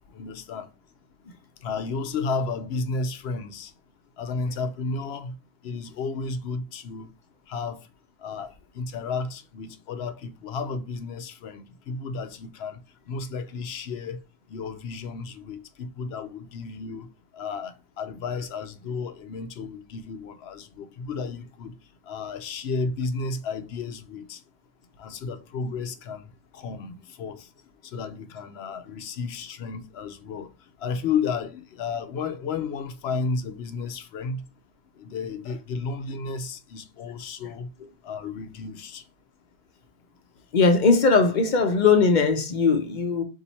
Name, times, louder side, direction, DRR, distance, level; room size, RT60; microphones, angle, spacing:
voice 1, 0.1-0.7 1.6-3.7 4.2-5.3 5.6-7.1 7.5-7.8 8.2-12.8 13.1-14.2 14.5-17.1 17.3-21.7 22.1-24.4 25.0-26.2 26.5-27.5 27.8-30.5 30.8-34.4 35.0-37.7 38.0-39.0, left 4 dB, 80° left, 0.9 m, -32 dB
voice 2, 40.5-43.2, left 4 dB, 50° left, 0.8 m, -19 dB
4.0 x 2.7 x 4.3 m
omnidirectional pair, 1.1 m